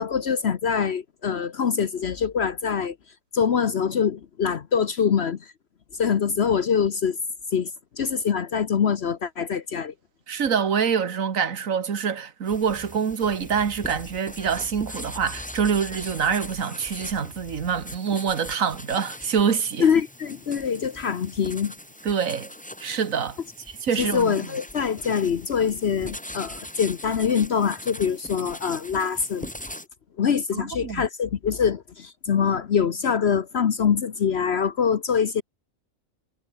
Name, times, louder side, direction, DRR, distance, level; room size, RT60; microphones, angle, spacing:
voice 1, 0.0-3.0 3.3-5.4 6.0-7.2 7.5-7.7 8.0-9.9 19.8-21.7 24.0-29.5 30.2-35.4, left 7 dB, 55° left, 1.1 m, -24 dB
voice 2, 10.3-19.9 22.0-22.5 22.8-23.4 23.8-24.4 30.5-31.0, right 7 dB, 75° right, 1.9 m, -25 dB
sound 1, 12.5-29.9, left 1 dB, 5° left, 1.8 m, -41 dB
omnidirectional pair, 1.4 m